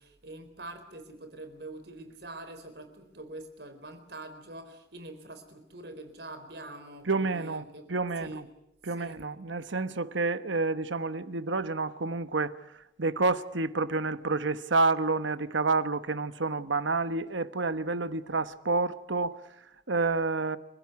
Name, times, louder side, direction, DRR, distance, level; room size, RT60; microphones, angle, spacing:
voice 1, 0.0-8.4 8.8-9.2, right 2 dB, 60° right, 4.2 m, -45 dB
voice 2, 7.1-7.6 7.9-8.4 8.8-20.6, right 3 dB, 80° right, 1.1 m, -29 dB
29.5 x 15.5 x 9.6 m
head